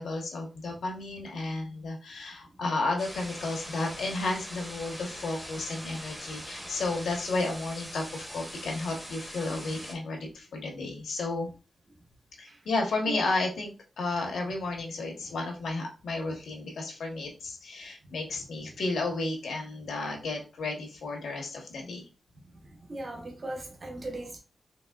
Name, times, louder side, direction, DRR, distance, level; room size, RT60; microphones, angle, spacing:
voice 1, 0.0-11.5 12.4-13.7 14.0-22.1, left 2 dB, 85° left, 1.1 m, -32 dB
sound 1, 3.0-9.9, equal, 5° right, 0.8 m, -42 dB
voice 2, 13.1-13.4 18.0-18.8 22.6-24.4, right 1 dB, 35° right, 0.7 m, -39 dB
4.0 x 3.0 x 2.3 m
wide cardioid pair, 160°, 0 cm